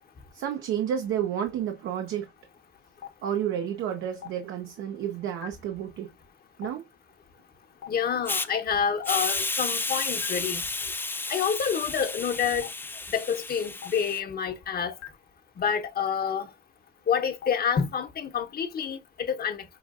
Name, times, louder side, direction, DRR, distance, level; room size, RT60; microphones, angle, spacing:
voice 1, 0.3-2.3 3.2-6.1 6.6-6.8, right 9 dB, 85° right, 0.7 m, -30 dB
Stream, 3.0-3.1 4.2-4.3 5.4-5.5 6.6-6.7 7.8-7.9 9.0-9.1 10.2-10.3 11.4-11.5 12.6-12.7 13.8-13.9 15.0-15.1 16.2-16.3 17.4-17.5, left 11 dB, 85° left, 0.8 m, -38 dB
voice 2, 7.9-10.6 11.3-12.7 13.1-14.9 15.6-16.5 17.1-19.6, left 7 dB, 50° left, 0.9 m, -28 dB
Hiss, 8.3-8.5 9.0-14.2, left 3 dB, 10° left, 0.3 m, -32 dB
5.6 x 2.4 x 2.4 m
cardioid pair, 90°, 20 cm